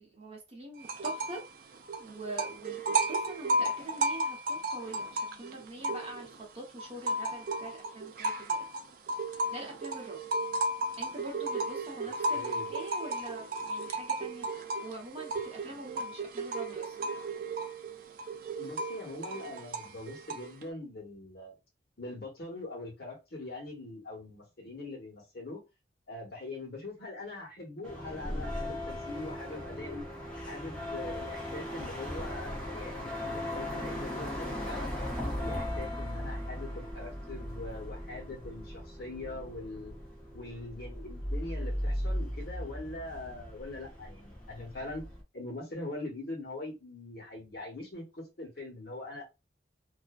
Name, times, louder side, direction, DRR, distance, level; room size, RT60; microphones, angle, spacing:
voice 1, 0.0-1.7 2.0-8.6 9.5-10.2 11.0-14.5 14.8-17.0, right 1 dB, 35° right, -1 dB, 0.8 m, -44 dB
sound 1, 0.8-1.5 1.7-6.4 6.8-20.6, right 2 dB, 50° right, 0.4 m, -34 dB
voice 2, 12.0-12.7 18.6-21.5 22.0-25.6 26.1-30.0 30.4-34.9 35.4-40.0 40.3-45.1 45.3-49.3, left 2 dB, 60° left, -1 dB, 1.0 m, -42 dB
sound 2, 27.8-45.2, left 1 dB, 5° left, 0.6 m, -37 dB
2.5 x 2.1 x 2.3 m, 0.25 s
head